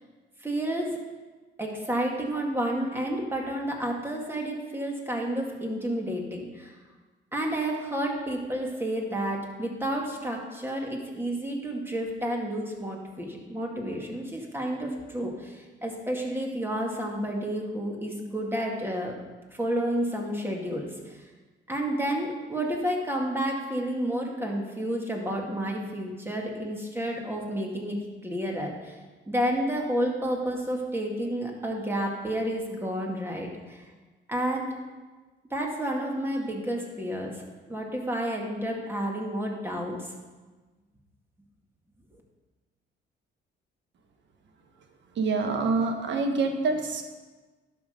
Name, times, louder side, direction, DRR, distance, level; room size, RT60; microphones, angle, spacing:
voice 1, 0.4-1.0 1.6-6.7 7.3-19.2 19.5-21.2 21.7-28.9 29.3-33.9 34.3-34.7 35.5-40.1, right 1 dB, 10° right, 0 dB, 2.1 m, -30 dB
voice 2, 45.2-47.0, right 3 dB, 70° right, 5 dB, 1.4 m, -26 dB
11.0 x 6.2 x 5.1 m, 1.3 s
cardioid pair, 90°, 20 cm